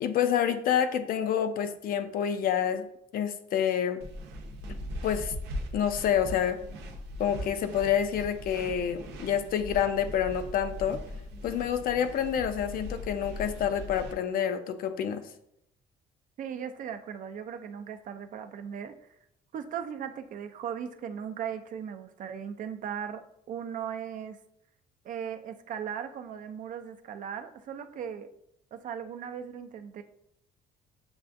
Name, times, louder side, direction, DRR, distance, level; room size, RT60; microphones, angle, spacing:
voice 1, 0.0-2.9 3.1-4.0 5.0-5.3 5.7-6.6 7.2-11.0 11.4-15.2, left 9 dB, 60° left, 8 dB, 0.5 m, -28 dB
sound 1, 4.0-14.1, left 1 dB, 85° right, 0.7 m, -40 dB
voice 2, 16.4-18.9 19.5-24.4 25.0-28.3 28.7-30.0, right 8 dB, 50° right, 8 dB, 0.4 m, -38 dB
6.8 x 2.4 x 2.5 m, 0.75 s
cardioid pair, 110°, 17 cm